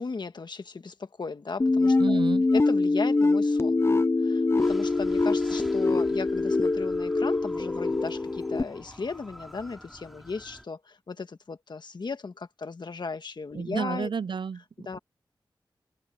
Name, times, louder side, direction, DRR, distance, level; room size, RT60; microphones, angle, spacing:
voice 1, 0.0-2.2 2.5-3.8 4.2-14.1 14.8-15.0, left 4 dB, 60° left, 1.6 m, -36 dB
sound 1, 1.6-8.6, left 3 dB, 30° left, 0.6 m, -24 dB
voice 2, 2.0-2.5 13.5-15.0, right 6 dB, 65° right, 0.6 m, -31 dB
sound 2, 4.6-10.6, equal, ahead, 3.8 m, -48 dB
wide cardioid pair, 80°, 9 cm